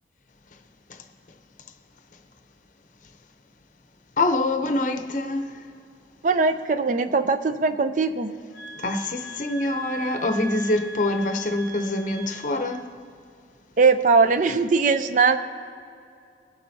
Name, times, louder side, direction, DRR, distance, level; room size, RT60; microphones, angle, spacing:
voice 1, 4.2-5.5 8.8-12.9, left 2 dB, 45° left, 0.7 m, -25 dB
voice 2, 6.2-8.3 13.8-15.4, right 4 dB, 45° right, 0.5 m, -20 dB
sound 1, 8.5-12.8, right 3 dB, ahead, 1.5 m, -40 dB
22.0 x 7.8 x 2.8 m
head